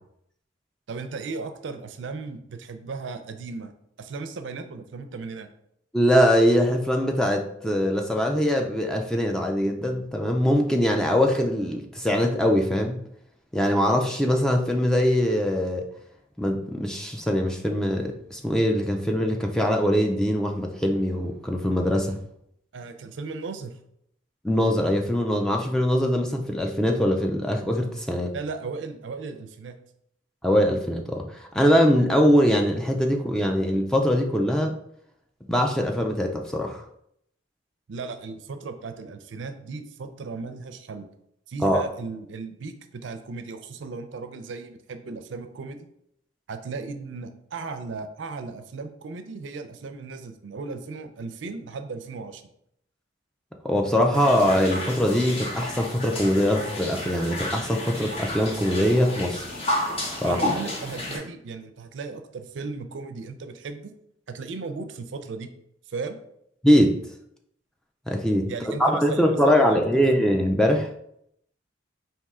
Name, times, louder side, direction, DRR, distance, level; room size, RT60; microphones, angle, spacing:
voice 1, 0.9-3.7 4.0-5.5 22.7-23.8 28.3-29.8 37.9-41.1 41.5-45.9 46.5-52.4 60.2-63.9 64.3-65.5 65.9-66.2 68.5-70.0, right 4 dB, 75° right, 8 dB, 0.4 m, -36 dB
voice 2, 5.9-13.0 13.5-15.9 16.4-22.2 24.4-28.3 30.4-34.7 35.5-36.8 41.6-41.9 53.6-59.6 60.2-60.4 66.6-67.0 68.1-70.9, equal, 5° left, 2 dB, 0.3 m, -22 dB
sound 1, 54.1-61.2, left 1 dB, 30° left, 0.8 m, -31 dB
4.2 x 2.8 x 3.5 m, 0.73 s
head